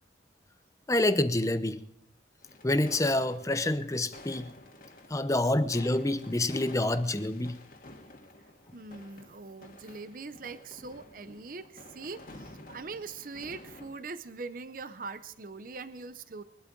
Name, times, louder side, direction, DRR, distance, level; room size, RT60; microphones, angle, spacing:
voice 1, 0.9-1.8 2.6-4.5 5.1-7.6, left 1 dB, 15° left, 11 dB, 0.7 m, -27 dB
sound 1, 2.4-14.0, left 2 dB, 50° left, 1.9 m, -51 dB
voice 2, 8.7-16.4, right 4 dB, 50° right, 12 dB, 0.7 m, -42 dB
22.5 x 12.0 x 3.9 m, 0.72 s
head